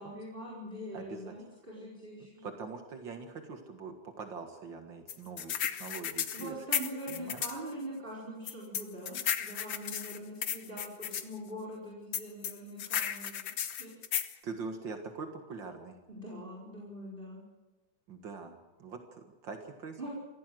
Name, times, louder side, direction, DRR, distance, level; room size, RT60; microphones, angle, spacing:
voice 1, 0.0-2.4 6.3-13.5 13.8-13.9 16.1-17.4 20.0-20.1, right 1 dB, 25° right, -5 dB, 5.0 m, -43 dB
voice 2, 0.9-1.4 2.4-6.7 7.1-7.4 14.4-16.0 18.1-20.1, right 4 dB, 70° right, 5 dB, 2.4 m, -43 dB
sound 1, 5.1-7.6 8.5-11.2 12.1-14.3, left 9 dB, 75° left, 1.9 m, -34 dB
24.5 x 16.5 x 7.7 m, 1.2 s
omnidirectional pair, 2.1 m